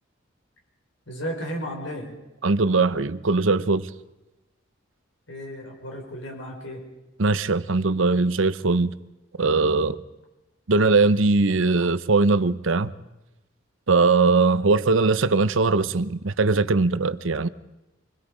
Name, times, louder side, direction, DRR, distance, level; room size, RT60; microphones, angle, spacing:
voice 1, 1.1-2.1 5.3-6.8, equal, 70° left, 5.6 m, -34 dB
voice 2, 2.4-3.9 7.2-8.9 9.4-10.0 10.7-12.9 13.9-17.5, right 3 dB, 75° right, 0.8 m, -20 dB
27.0 x 21.5 x 5.1 m
head